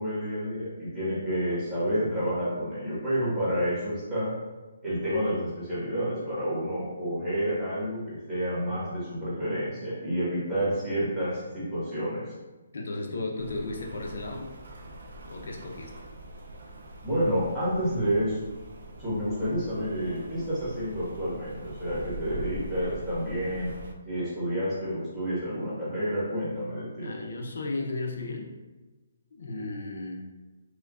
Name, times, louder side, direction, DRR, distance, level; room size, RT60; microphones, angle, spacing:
voice 1, 0.0-4.3 4.8-12.2 17.0-18.4 19.0-23.7 24.0-27.1, equal, 5° right, -13 dB, 1.3 m, -29 dB
voice 2, 12.7-14.5 15.2-15.9 27.0-28.5 29.3-30.3, left 2 dB, 70° left, 1 dB, 0.6 m, -34 dB
Rain, 13.4-23.9, right 1 dB, 60° right, 0.5 m, -43 dB
4.5 x 2.2 x 2.4 m, 1.2 s
hypercardioid pair, 170°, 0 cm